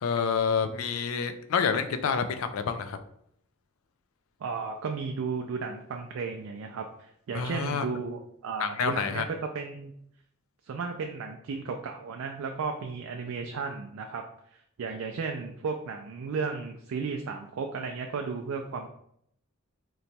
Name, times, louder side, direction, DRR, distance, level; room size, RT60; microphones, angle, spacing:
voice 1, 0.0-3.0 7.3-7.9 8.6-9.3, left 6 dB, 80° left, 9 dB, 0.4 m, -28 dB
voice 2, 4.4-9.9 10.6-14.3 14.8-18.9, right 5 dB, 75° right, 3 dB, 0.3 m, -34 dB
3.0 x 2.2 x 4.0 m, 0.70 s
head